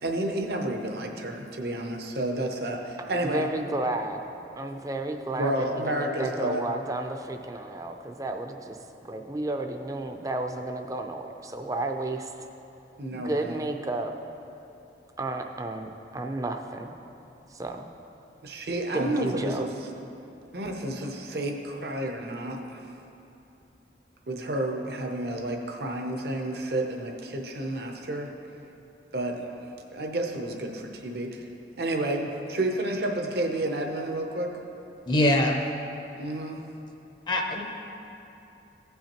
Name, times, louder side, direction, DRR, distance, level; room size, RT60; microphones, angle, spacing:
voice 1, 0.0-3.5 5.3-6.7 13.0-13.5 18.4-19.7 20.5-22.8 24.3-28.3 29.1-29.5 29.9-31.4 31.8-34.5 36.2-36.6, right 1 dB, 65° right, 2 dB, 0.7 m, -30 dB
voice 2, 3.0-12.5 13.1-14.1 15.2-16.9 17.5-17.9 18.9-19.7, right 2 dB, 20° right, 4 dB, 0.4 m, -32 dB
voice 3, 35.1-35.6 37.3-37.6, left 1 dB, 25° left, 2 dB, 0.6 m, -23 dB
16.0 x 5.6 x 3.0 m, 2.9 s
head